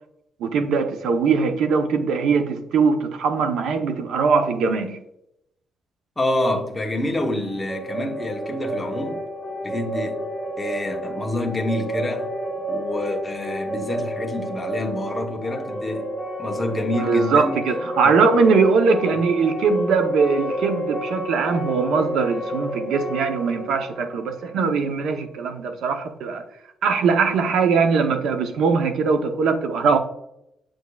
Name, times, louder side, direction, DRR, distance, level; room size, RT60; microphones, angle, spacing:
voice 1, 0.4-5.0 17.0-26.4 26.8-30.0, right 5 dB, 80° right, 0.7 m, -21 dB
voice 2, 6.2-9.2 9.6-10.3 10.6-12.3 12.7-16.1 16.4-17.6 18.0-18.1, left 1 dB, 10° left, 1.0 m, -27 dB
sound 1, 7.4-25.2, right 1 dB, 10° right, 2.6 m, -30 dB
8.1 x 6.3 x 2.3 m
cardioid pair, 140°, 0 cm